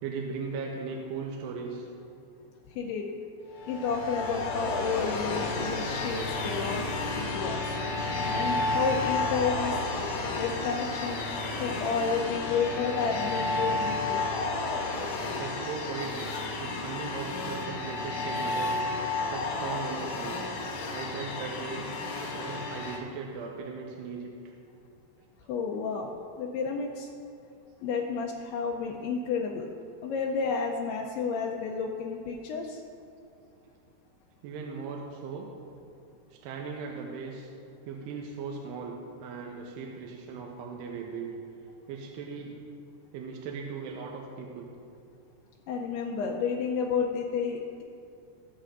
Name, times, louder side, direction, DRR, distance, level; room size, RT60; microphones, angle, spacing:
voice 1, 0.0-1.9 15.3-16.3 16.6-18.8 19.2-20.5 20.9-21.9 22.3-24.3 34.4-35.5 36.4-37.5 37.9-38.9 39.2-41.3 41.9-42.6 43.1-44.7, right 5 dB, 85° right, 0 dB, 2.8 m, -38 dB
voice 2, 2.8-3.1 3.7-6.8 7.2-7.7 8.2-9.8 10.3-11.2 11.6-14.2 25.5-26.1 26.4-27.1 27.8-29.7 30.0-32.8 45.7-47.8, left 5 dB, 80° left, -1 dB, 2.6 m, -31 dB
sound 1, 3.6-23.0, left 3 dB, 65° left, 1.9 m, -32 dB
19.5 x 7.6 x 2.6 m, 2.5 s
omnidirectional pair, 4.8 m